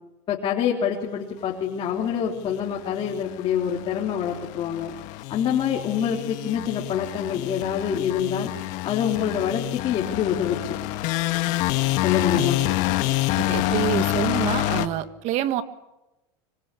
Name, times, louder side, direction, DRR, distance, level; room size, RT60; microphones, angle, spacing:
voice 1, 0.3-4.9 5.3-8.5 8.8-10.8 12.0-12.6, left 8 dB, 40° left, -1 dB, 3.7 m, -26 dB
sound 1, 2.5-14.9, left 17 dB, 60° left, 1.8 m, -27 dB
voice 2, 13.4-15.6, right 13 dB, 55° right, 11 dB, 1.9 m, -27 dB
25.5 x 25.5 x 8.5 m, 0.96 s
supercardioid pair, 125°, 14 cm